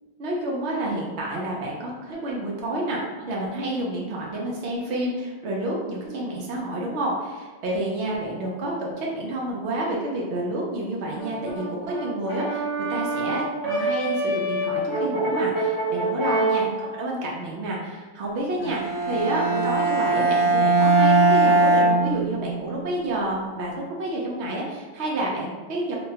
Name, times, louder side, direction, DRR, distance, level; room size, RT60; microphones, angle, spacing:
voice 1, 0.2-12.6 12.9-26.0, right 1 dB, 65° right, -2 dB, 0.8 m, -29 dB
Brass instrument, 11.2-16.7, right 2 dB, 25° right, 0.5 m, -26 dB
Bowed string instrument, 18.6-22.7, right 2 dB, 20° left, 0.8 m, -20 dB
2.9 x 2.2 x 2.7 m, 1.3 s
omnidirectional pair, 1.4 m